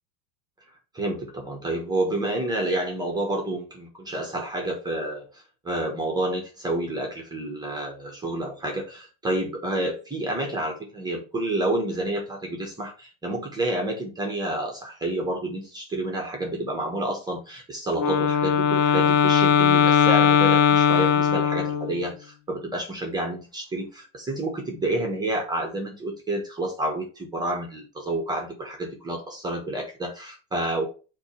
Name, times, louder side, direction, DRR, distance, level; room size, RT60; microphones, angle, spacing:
voice 1, 0.9-30.9, right 1 dB, 10° right, 1 dB, 1.3 m, -29 dB
Wind instrument woodwind instrument, 17.9-22.1, left 7 dB, 50° left, 1.1 m, -19 dB
8.0 x 3.1 x 4.3 m, 0.33 s
supercardioid pair, 160°, 41 cm